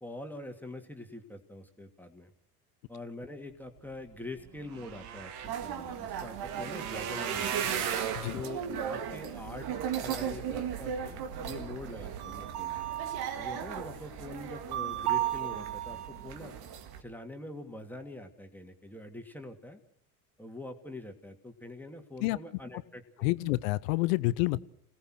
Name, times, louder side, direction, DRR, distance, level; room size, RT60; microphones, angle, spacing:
voice 1, 0.0-2.3 2.9-7.8 8.3-9.7 10.0-12.9 13.3-16.6 17.0-19.8 20.4-23.3, left 2 dB, 5° left, 5 dB, 2.7 m, -44 dB
sound 1, 4.1-4.2 4.4-10.8 11.3-11.8 12.2-12.4 12.7-12.8, right 8 dB, 70° right, 2.2 m, -38 dB
sound 2, 5.4-17.0, right 9 dB, 50° right, 2.2 m, -36 dB
voice 2, 23.2-24.6, left 19 dB, 60° left, 18 dB, 1.0 m, -28 dB
28.0 x 17.5 x 6.4 m, 0.69 s
figure-of-eight pair, 65°, 46 cm